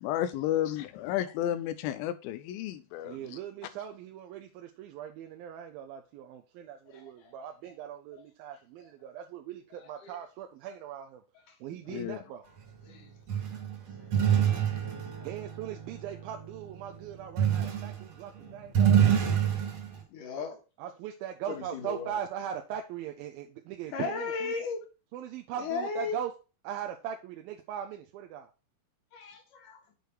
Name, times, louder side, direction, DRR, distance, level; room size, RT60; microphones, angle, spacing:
voice 1, 0.0-3.4 11.9-12.2, left 12 dB, 90° left, 2.4 m, -32 dB
voice 2, 3.0-11.2 11.6-12.4 15.2-19.3 20.8-24.5 25.1-26.3 26.6-28.5, right 10 dB, 85° right, 2.6 m, -40 dB
voice 3, 6.9-7.3 8.1-8.2 9.8-10.2 10.7-10.8 12.8-13.1 18.4-18.5 20.1-20.6 21.5-22.2 23.9-24.8 25.6-26.2 29.1-29.8, left 5 dB, 65° left, 3.2 m, -36 dB
sound 1, 13.3-16.5 17.4-18.0 18.4-20.0, right 9 dB, 50° right, 2.8 m, -26 dB
6.8 x 6.6 x 4.5 m
omnidirectional pair, 4.1 m